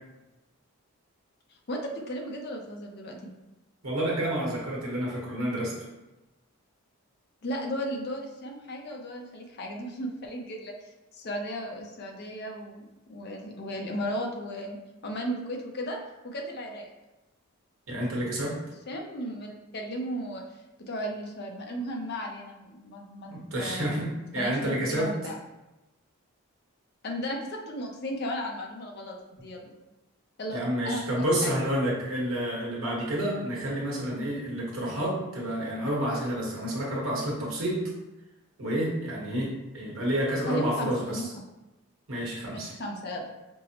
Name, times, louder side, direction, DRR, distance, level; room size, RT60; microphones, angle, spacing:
voice 1, 1.7-3.3 7.4-12.8 13.1-14.8 15.0-16.0 16.2-16.9 18.9-20.4 20.9-24.0 24.4-25.3 27.0-29.7 30.4-30.6 30.8-31.5 40.5-41.4 42.5-43.3, equal, 45° left, 1 dB, 0.5 m, -35 dB
voice 2, 3.8-5.8 17.9-18.6 23.3-25.1 30.5-37.8 38.6-41.3 42.1-42.7, equal, 60° right, -4 dB, 1.1 m, -29 dB
5.3 x 2.0 x 2.8 m, 1.0 s
head